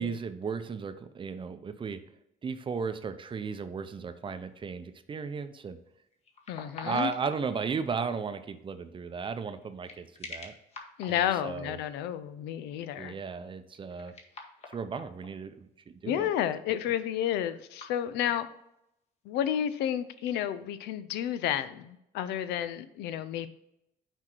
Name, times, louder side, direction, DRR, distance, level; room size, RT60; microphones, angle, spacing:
voice 1, 0.0-2.0 2.4-5.8 6.8-10.5 11.1-11.8 13.0-14.1 14.7-16.3, right 5 dB, 30° right, 10 dB, 0.6 m, -35 dB
sound 1, 4.0-4.5 6.1-8.1 9.6-11.8 13.7-15.3 17.1-18.5 18.7-18.8 19.9-20.4, left 3 dB, 40° left, 1.2 m, -48 dB
voice 2, 6.5-7.1 11.0-13.1 16.1-18.5 19.3-23.5, left 10 dB, 85° left, 13 dB, 0.5 m, -31 dB
6.2 x 4.5 x 4.5 m, 0.81 s
cardioid pair, 110°, 17 cm